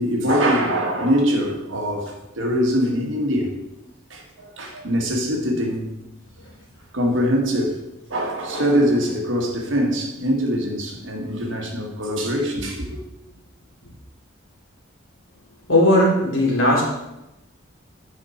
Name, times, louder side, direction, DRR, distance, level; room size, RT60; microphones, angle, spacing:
voice 1, 0.0-3.6 4.1-5.9 6.9-7.8 8.1-13.0, equal, 75° right, 1.6 m, -23 dB
voice 2, 15.7-16.8, left 1 dB, 75° left, 2.8 m, -17 dB
8.9 x 5.4 x 4.3 m
head